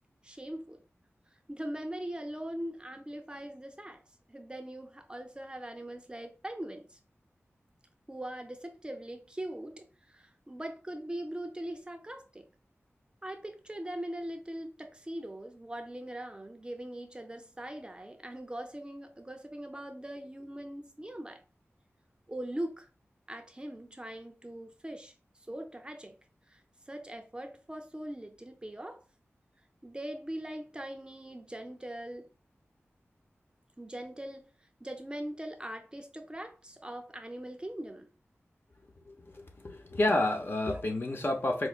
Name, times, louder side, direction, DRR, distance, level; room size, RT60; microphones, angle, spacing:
voice 1, 0.2-0.8 1.3-4.0 4.3-7.0 8.1-12.5 13.2-21.4 22.3-22.9 23.3-26.2 26.5-29.0 29.8-32.3 33.8-34.5 34.8-38.1 40.7-40.8, right 1 dB, 20° right, 0.5 m, -41 dB
voice 2, 39.1-41.7, left 1 dB, 50° left, 0.7 m, -30 dB
4.7 x 2.0 x 2.4 m
wide cardioid pair, 60°, 5 cm